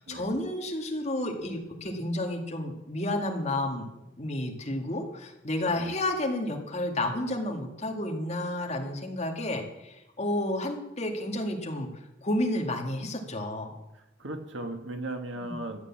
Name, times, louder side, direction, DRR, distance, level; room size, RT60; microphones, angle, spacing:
voice 1, 0.0-3.9 4.2-11.9 12.2-13.7 15.4-15.5, left 1 dB, 35° left, 2 dB, 2.0 m, -31 dB
voice 2, 13.9-15.9, right 1 dB, 90° right, 5 dB, 1.7 m, -37 dB
14.0 x 8.5 x 7.4 m, 0.94 s
head